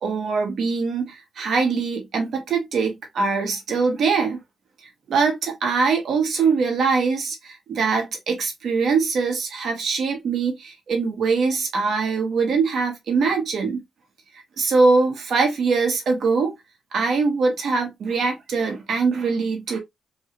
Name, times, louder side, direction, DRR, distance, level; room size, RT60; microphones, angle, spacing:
voice 1, 0.0-4.4 5.1-13.8 14.6-16.5 16.9-19.8, right 4 dB, 70° right, 1.3 m, -22 dB
3.1 x 2.7 x 2.9 m
supercardioid pair, 55°, 0 cm